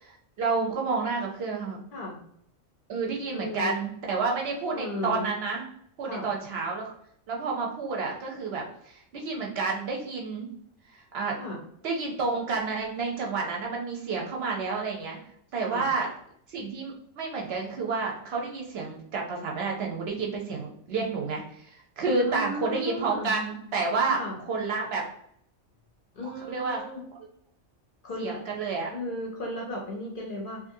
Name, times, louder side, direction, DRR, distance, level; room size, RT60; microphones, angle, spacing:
voice 1, 0.0-1.8 2.9-5.6 6.0-6.9 7.3-10.5 10.9-11.4 11.8-15.2 15.5-16.1 16.5-25.0 26.2-26.8 28.2-28.9, right 4 dB, 65° right, -1 dB, 0.7 m, -30 dB
voice 2, 1.9-2.2 3.3-3.8 4.7-5.3 6.1-6.3 11.4-11.6 15.6-15.9 22.1-23.3 24.1-24.4 26.1-27.0 28.0-28.4 28.9-30.6, left 1 dB, 60° left, -2 dB, 0.6 m, -35 dB
2.5 x 2.5 x 2.6 m, 0.69 s
omnidirectional pair, 1.3 m